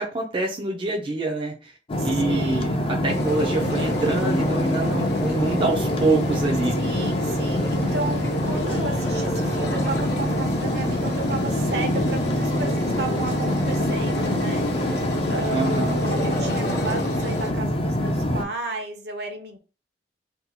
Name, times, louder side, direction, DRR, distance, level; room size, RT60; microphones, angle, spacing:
voice 1, 0.0-1.7 2.0-6.8 15.5-16.0, right 3 dB, 30° right, 0.4 m, -26 dB
sound 1, 1.9-18.4, left 1 dB, 30° left, 0.5 m, -25 dB
voice 2, 2.0-2.9 6.7-19.6, right 2 dB, 65° right, 0.7 m, -33 dB
sound 2, 3.1-17.5, right 1 dB, 65° left, 0.8 m, -32 dB
2.7 x 2.3 x 4.0 m
head